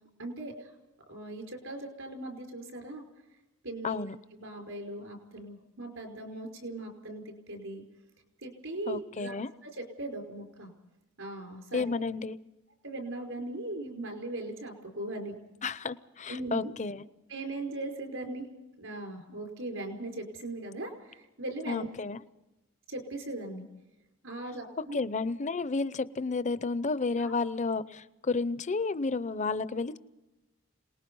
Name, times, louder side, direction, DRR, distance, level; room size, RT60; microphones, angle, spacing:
voice 1, 0.2-0.7 1.1-3.0 3.6-4.0 4.3-7.8 8.4-9.3 9.6-10.7 11.2-11.8 12.8-15.3 16.3-16.7 17.3-18.5 18.8-21.9 22.9-23.7 24.2-25.0 27.2-27.3, right 2 dB, 75° right, 3 dB, 5.1 m, -39 dB
voice 2, 3.8-4.2 8.9-9.5 11.7-12.4 15.6-17.0 21.7-22.2 24.9-30.0, left 4 dB, 35° left, 15 dB, 0.7 m, -31 dB
27.0 x 19.5 x 5.5 m, 1.0 s
head